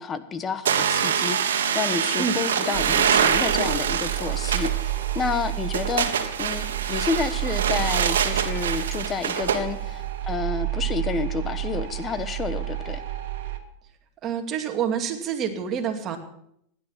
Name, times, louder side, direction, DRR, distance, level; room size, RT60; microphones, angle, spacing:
voice 1, 0.0-6.1 6.4-13.0, left 5 dB, 25° left, 12 dB, 1.3 m, -30 dB
sound 1, 0.7-9.6, right 8 dB, 90° right, 1.5 m, -25 dB
sound 2, 2.7-13.6, right 15 dB, 70° right, 1.9 m, -30 dB
voice 2, 14.2-16.2, right 7 dB, 35° right, 5 dB, 2.4 m, -27 dB
16.0 x 11.0 x 5.9 m, 0.72 s
hypercardioid pair, 120°, 0 cm